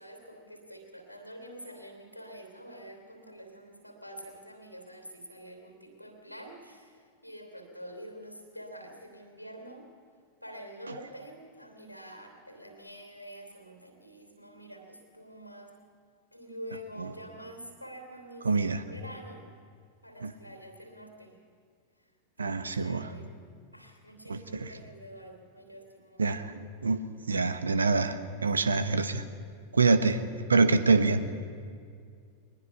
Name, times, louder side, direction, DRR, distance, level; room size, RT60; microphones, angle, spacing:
voice 1, 0.0-9.9 10.4-15.7 16.3-18.6 18.9-19.4 20.0-21.3 22.4-23.3 23.7-26.2, equal, 90° left, 5 dB, 3.1 m, -47 dB
voice 2, 18.4-18.8 20.2-20.3 22.4-23.1 24.3-24.7 26.2-26.5 26.8-29.2 29.7-30.2 30.5-31.2, right 3 dB, 75° right, 12 dB, 1.0 m, -25 dB
22.0 x 20.5 x 5.8 m, 2.2 s
figure-of-eight pair, 90°, 0 cm